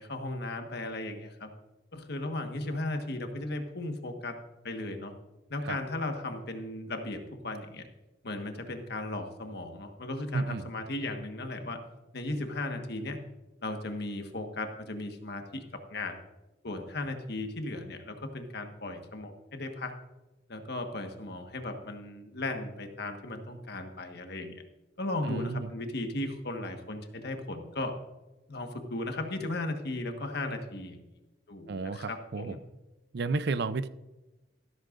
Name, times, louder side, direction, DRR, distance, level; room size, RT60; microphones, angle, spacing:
voice 1, 0.0-1.5 1.9-4.4 4.6-5.1 5.5-7.8 8.2-11.8 12.1-13.2 13.6-15.6 15.9-16.2 16.6-19.9 20.5-24.5 25.0-27.9 28.5-31.0 31.5-32.6, left 2 dB, 55° left, 5 dB, 1.5 m, -36 dB
voice 2, 10.3-10.7 25.2-25.7 31.7-32.6 33.1-33.9, right 3 dB, 60° right, 15 dB, 0.5 m, -32 dB
14.0 x 13.5 x 2.6 m, 1.1 s
head